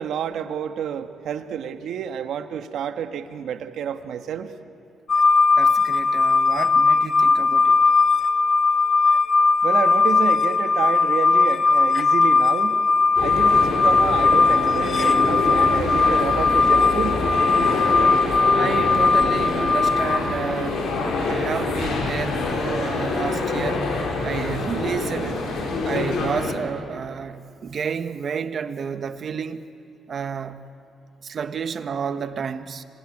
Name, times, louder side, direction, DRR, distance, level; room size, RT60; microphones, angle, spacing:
voice 1, 0.0-4.5 9.6-12.8 13.2-17.2, right 8 dB, 75° right, 1.4 m, -29 dB
sound 1, 5.1-20.2, left 4 dB, 40° left, 1.6 m, -19 dB
voice 2, 5.6-7.8 15.5-15.6 18.6-20.9 21.3-23.9 24.2-25.4 25.8-29.6 30.1-30.7 31.2-32.8, right 6 dB, 50° right, 1.3 m, -30 dB
sound 2, 13.1-26.5, left 3 dB, 80° left, 5.3 m, -26 dB
27.0 x 21.5 x 9.9 m
cardioid pair, 90°, 0 cm